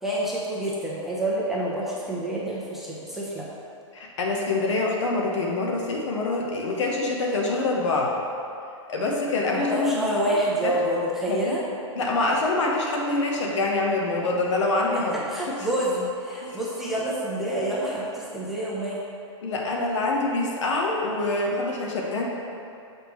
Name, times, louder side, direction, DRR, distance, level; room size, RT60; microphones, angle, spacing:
voice 1, 0.0-3.5 9.5-11.6 14.9-19.0, right 1 dB, ahead, -7 dB, 0.8 m, -28 dB
voice 2, 3.9-8.1 8.9-10.0 10.6-10.7 11.3-11.6 11.9-15.7 16.4-16.6 19.4-22.2, left 2 dB, 65° left, -1 dB, 1.2 m, -25 dB
6.4 x 4.9 x 3.2 m, 2.6 s
hypercardioid pair, 135°, 16 cm